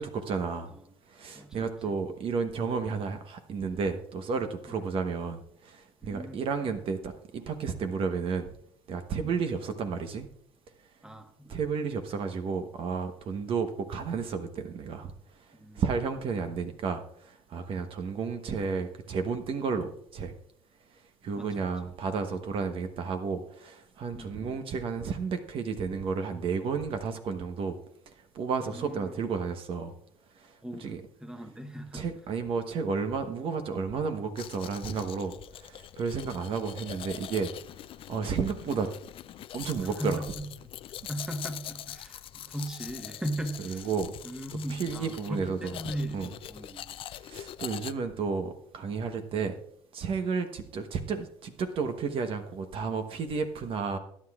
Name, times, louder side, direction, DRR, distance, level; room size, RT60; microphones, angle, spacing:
voice 1, 0.0-0.7 1.1-8.5 8.9-10.3 11.5-15.1 15.7-20.3 21.2-27.8 28.3-29.9 30.4-30.5 30.8-31.0 31.9-37.5 38.1-38.9 39.5-40.2 43.6-44.2 44.7-45.7 46.1-46.3 47.2-49.6 49.9-54.0, right 5 dB, 50° right, 7 dB, 1.1 m, -32 dB
voice 2, 1.3-2.0 4.7-4.9 6.0-6.5 9.2-9.3 11.0-11.6 15.5-15.8 21.3-21.9 24.1-24.7 28.6-29.1 30.6-30.9 31.2-32.1 39.8-40.5 41.1-43.9 44.2-47.0, right 1 dB, 5° right, 6 dB, 1.3 m, -38 dB
Domestic sounds home sounds, 34.4-47.9, left 12 dB, 50° left, 0.5 m, -43 dB
21.0 x 9.8 x 2.4 m, 0.70 s
supercardioid pair, 100°, 12 cm